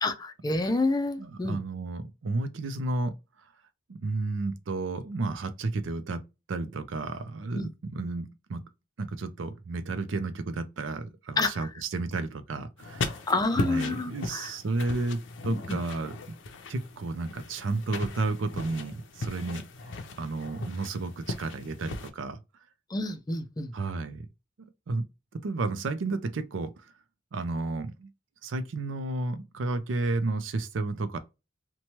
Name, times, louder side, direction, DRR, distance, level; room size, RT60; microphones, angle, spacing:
voice 1, 0.0-1.6 7.5-7.7 11.4-11.5 13.3-14.5 15.5-15.8 22.9-23.7, left 2 dB, 20° left, 0.4 m, -28 dB
voice 2, 1.2-3.1 3.9-6.2 6.5-8.6 9.0-13.2 13.5-16.3 16.7-19.6 20.2-22.4 23.7-24.2 24.9-25.0 25.3-26.7 27.3-28.1 28.4-31.2, right 3 dB, 85° right, 0.5 m, -32 dB
sound 1, 12.8-22.1, left 3 dB, 75° left, 0.5 m, -38 dB
2.9 x 2.2 x 2.8 m
head